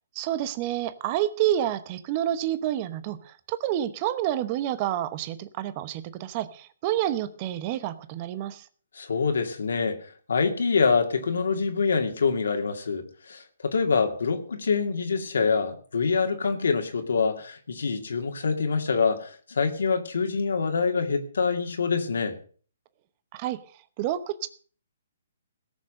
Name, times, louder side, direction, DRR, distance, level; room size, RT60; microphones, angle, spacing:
voice 1, 0.1-8.7 23.3-23.6 24.0-24.5, right 12 dB, 35° right, 12 dB, 1.0 m, -29 dB
voice 2, 8.9-10.0 10.3-22.4, left 5 dB, 80° left, 5 dB, 2.3 m, -25 dB
17.5 x 6.8 x 6.5 m, 0.43 s
hypercardioid pair, 145°, 0 cm